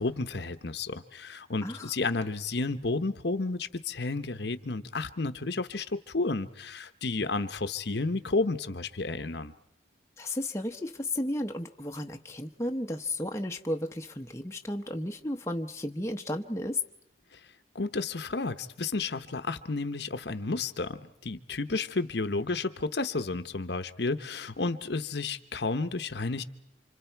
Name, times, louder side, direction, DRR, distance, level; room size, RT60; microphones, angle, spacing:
voice 1, 0.0-9.5 17.3-17.4 17.7-26.4, left 3 dB, 65° left, 10 dB, 0.9 m, -32 dB
voice 2, 10.2-16.8, left 1 dB, 15° left, 3 dB, 0.8 m, -33 dB
28.5 x 26.0 x 4.6 m, 0.73 s
head